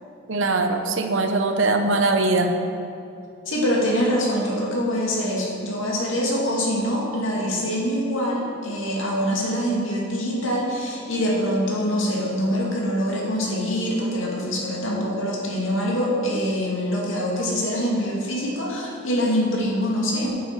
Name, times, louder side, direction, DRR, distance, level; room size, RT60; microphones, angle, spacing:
voice 1, 0.3-2.5, right 2 dB, 75° right, 5 dB, 0.9 m, -21 dB
voice 2, 3.5-20.3, equal, 80° left, -3 dB, 2.4 m, -24 dB
8.7 x 7.4 x 6.7 m, 2.6 s
head